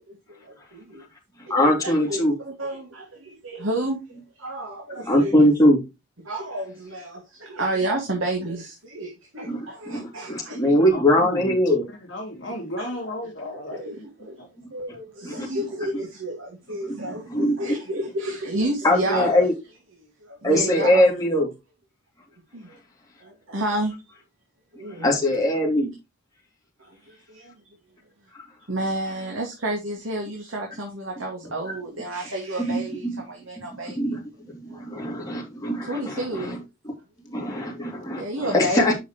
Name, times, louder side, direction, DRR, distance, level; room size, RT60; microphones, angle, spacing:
voice 1, 0.1-1.0 1.5-4.0 4.4-5.3 6.3-10.6 12.8-12.9 13.5-14.5 14.7-19.4 20.2-21.1 22.5-22.8 23.2-23.9 24.8-25.2 26.8-27.5 28.7-34.0 34.7-34.8 35.8-36.6 38.2-38.9, right 1 dB, 75° right, 2.2 m, -31 dB
voice 2, 1.4-2.3 5.0-5.8 9.5-11.9 15.2-15.5 16.9-17.0 17.3-17.6 18.8-19.5 20.4-21.5 25.0-25.9 28.3-28.4 31.7-31.8 32.6-33.2 33.7-36.6 36.8-36.9 37.3-38.9, left 1 dB, 15° left, 2.8 m, -22 dB
voice 3, 10.9-11.6 12.1-13.9 14.4-14.5 37.5-37.6, left 1 dB, 60° left, 2.8 m, -33 dB
8.9 x 5.7 x 3.1 m
head